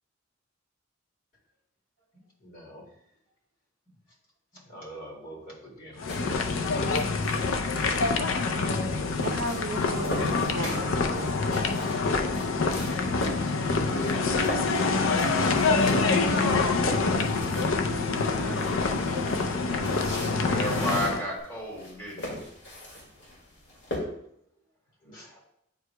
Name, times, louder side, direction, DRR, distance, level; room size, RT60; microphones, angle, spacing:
voice 1, 2.4-3.0 4.5-6.9 13.6-15.3 15.6-16.8 18.3-19.4 25.0-25.3, equal, 45° left, -4 dB, 2.2 m, -44 dB
sound 1, 6.0-21.2, left 3 dB, 80° left, 0.5 m, -26 dB
sound 2, 6.1-24.0, left 1 dB, 65° left, 2.2 m, -41 dB
voice 2, 9.2-11.4, right 2 dB, 85° right, 7 dB, 0.5 m, -35 dB
voice 3, 20.4-22.3 25.2-25.4, equal, 10° left, -4 dB, 2.0 m, -32 dB
9.1 x 4.8 x 2.2 m, 0.74 s
head